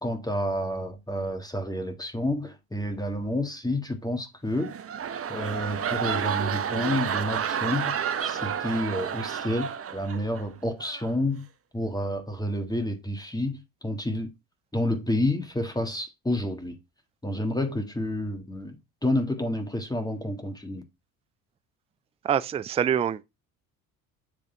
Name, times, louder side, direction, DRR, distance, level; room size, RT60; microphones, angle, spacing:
voice 1, 0.0-4.7 5.3-7.9 8.2-11.4 11.7-14.3 14.7-16.8 17.2-18.8 19.0-20.8, left 1 dB, 10° left, 1.6 m, -29 dB
sound 1, 4.5-10.4 10.8-11.1, right 8 dB, 30° right, 0.8 m, -30 dB
voice 2, 22.2-23.2, right 9 dB, 15° right, 0.3 m, -25 dB
7.7 x 3.5 x 4.4 m
hypercardioid pair, 60°, 43 cm